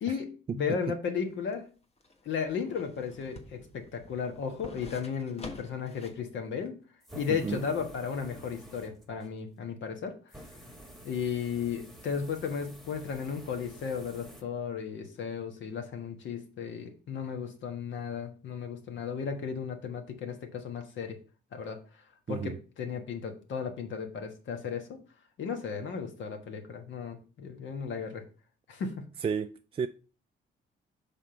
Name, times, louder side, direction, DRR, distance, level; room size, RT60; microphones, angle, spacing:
voice 1, 0.0-1.6 2.2-6.7 7.2-10.1 11.0-21.2 21.5-21.8 22.3-25.0 25.4-28.2 28.7-29.1, left 6 dB, 70° left, 1.3 m, -35 dB
sound 1, 1.2-6.3 6.6-6.7, left 2 dB, 30° left, 1.2 m, -48 dB
sound 2, 7.0-9.3 10.3-14.4, right 1 dB, ahead, 1.3 m, -50 dB
voice 2, 7.3-7.6 22.3-22.6 29.2-29.9, right 6 dB, 30° right, 0.3 m, -33 dB
5.8 x 3.7 x 5.7 m
cardioid pair, 90°, 20 cm